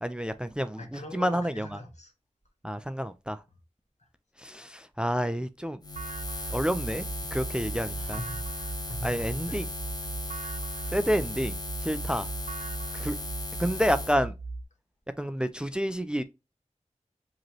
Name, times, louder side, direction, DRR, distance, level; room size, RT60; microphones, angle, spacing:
voice 1, 0.0-0.8 1.1-1.7 2.6-3.4 4.4-5.8 6.5-7.0 7.3-8.2 9.0-9.7 10.9-11.6 11.8-12.3 12.9-13.2 13.6-14.3 15.2-16.2, equal, 5° right, 0.3 m, -29 dB
voice 2, 0.8-2.1 4.0-4.1 8.0-8.4 8.7-9.6 10.0-10.1, left 1 dB, 70° left, 1.3 m, -41 dB
Buzz, 5.8-14.2, left 2 dB, 35° left, 0.9 m, -37 dB
sound 1, 6.0-14.6, right 3 dB, 90° right, 0.4 m, -38 dB
5.1 x 3.0 x 2.9 m
wide cardioid pair, 65°, 12 cm